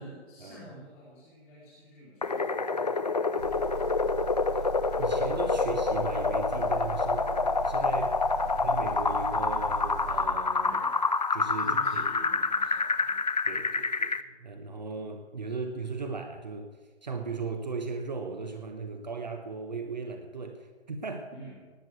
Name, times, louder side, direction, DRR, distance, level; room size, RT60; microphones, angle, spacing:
voice 1, 0.0-3.1 8.3-8.5 10.6-11.1 11.6-13.3 21.3-21.7, right 1 dB, 5° left, -11 dB, 1.1 m, -50 dB
sound 1, 2.2-14.2, left 4 dB, 40° left, 0.5 m, -27 dB
Engine, 3.4-10.3, right 5 dB, 90° right, 4.0 m, -39 dB
voice 2, 5.0-8.2 8.6-10.8 11.3-12.1 13.4-16.7 17.0-21.3, right 4 dB, 40° right, 6 dB, 1.0 m, -37 dB
18.5 x 6.3 x 8.1 m, 1.4 s
hypercardioid pair, 180°, 34 cm